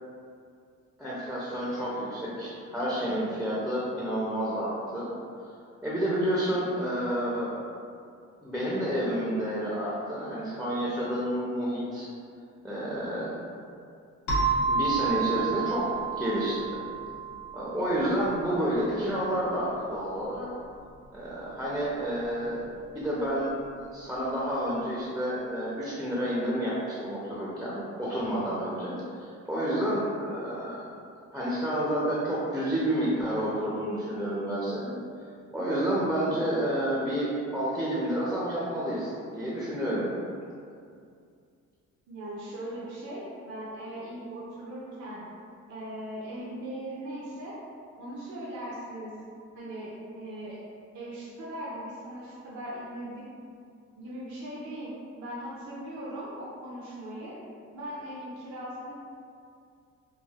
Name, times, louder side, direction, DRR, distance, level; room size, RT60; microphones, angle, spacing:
voice 1, 1.0-5.1 5.8-7.5 8.4-12.1 12.6-13.3 14.7-15.9 16.2-16.8 17.5-20.5 21.1-22.6 22.9-23.5 23.8-30.8 31.3-35.0 35.5-40.1, equal, ahead, -8 dB, 0.5 m, -29 dB
sound 1, 14.3-18.7, right 5 dB, 75° left, 0.9 m, -30 dB
voice 2, 42.1-45.2 45.7-47.6 48.0-49.1 49.5-50.6 50.9-53.2 53.9-54.9 55.2-57.4 57.7-58.9, right 1 dB, 70° right, -7 dB, 0.6 m, -39 dB
3.3 x 2.4 x 2.3 m, 2.4 s
cardioid pair, 90°, 30 cm